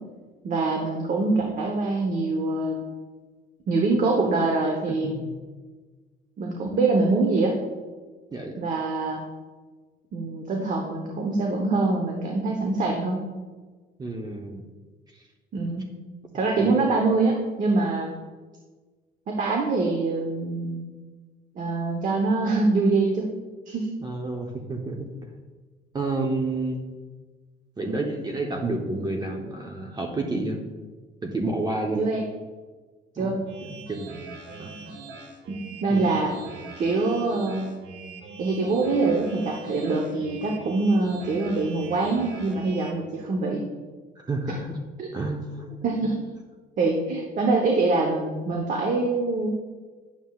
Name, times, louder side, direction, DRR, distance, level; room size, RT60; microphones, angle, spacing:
voice 1, 0.4-2.8 3.7-5.1 6.4-7.6 8.6-9.2 10.1-13.2 15.5-15.9 16.3-18.1 19.3-20.8 21.6-23.3 23.7-23.9 31.9-32.2 33.1-33.4 35.5-36.3 36.8-37.7 38.4-43.6 45.0-45.1 45.8-46.2 46.8-49.5, right 3 dB, 50° right, 1 dB, 1.0 m, -24 dB
voice 2, 4.9-5.3 8.3-8.6 14.0-14.6 16.6-16.8 24.0-25.0 25.9-26.8 27.8-30.6 31.2-32.0 33.2-34.1 34.6-34.7 35.9-36.1 44.2-44.8 45.1-45.8, right 2 dB, 25° right, 1 dB, 0.9 m, -30 dB
sound 1, 33.5-42.9, right 4 dB, 85° right, 1.0 m, -42 dB
9.4 x 7.1 x 2.4 m, 1.3 s
cardioid pair, 110°, 17 cm